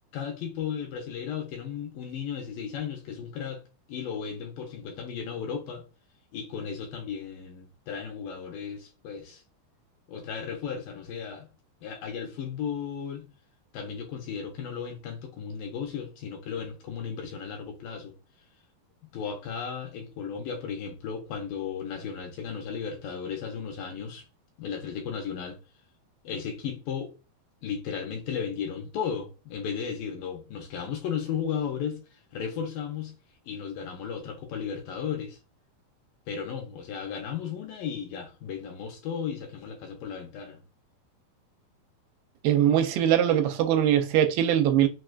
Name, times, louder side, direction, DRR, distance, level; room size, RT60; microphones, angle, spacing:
voice 1, 0.1-3.6 3.9-5.8 6.3-9.4 10.1-11.5 11.8-13.3 13.7-18.2 19.1-24.2 24.6-25.6 26.2-27.1 27.6-33.1 33.5-35.4 36.3-40.6, left 7 dB, 80° left, 2.2 m, -35 dB
voice 2, 42.4-44.9, right 10 dB, 85° right, 2.4 m, -22 dB
6.1 x 2.4 x 2.3 m
omnidirectional pair, 4.3 m